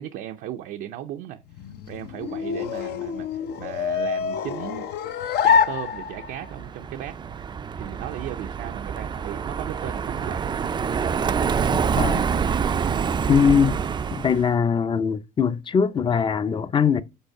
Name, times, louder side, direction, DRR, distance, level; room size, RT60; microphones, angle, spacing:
voice 1, 0.0-1.4 1.9-4.9 5.4-7.2 7.8-10.5, right 11 dB, 80° right, 0.5 m, -36 dB
sound 1, 1.5-6.5, left 7 dB, 70° left, 0.7 m, -25 dB
Car passing by, 6.0-14.5, right 6 dB, 25° right, 0.3 m, -26 dB
voice 2, 11.7-12.2 13.3-13.8 14.1-17.0, left 6 dB, 30° left, 0.5 m, -21 dB
5.4 x 4.1 x 5.8 m
cardioid pair, 110°, 17 cm